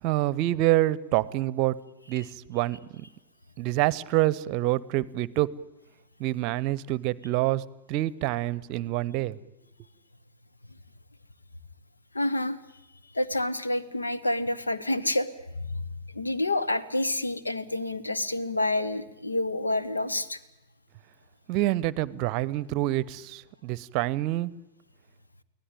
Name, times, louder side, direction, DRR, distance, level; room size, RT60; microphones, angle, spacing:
voice 1, 0.0-1.8 2.1-3.1 3.6-5.5 6.2-7.6 7.9-9.4 21.5-24.5, right 16 dB, 45° right, 22 dB, 0.7 m, -27 dB
voice 2, 12.1-12.6 13.1-15.3 15.7-15.8 16.1-20.4, left 1 dB, 80° left, 13 dB, 1.1 m, -28 dB
24.0 x 17.0 x 9.0 m, 0.95 s
figure-of-eight pair, 90°, 0 cm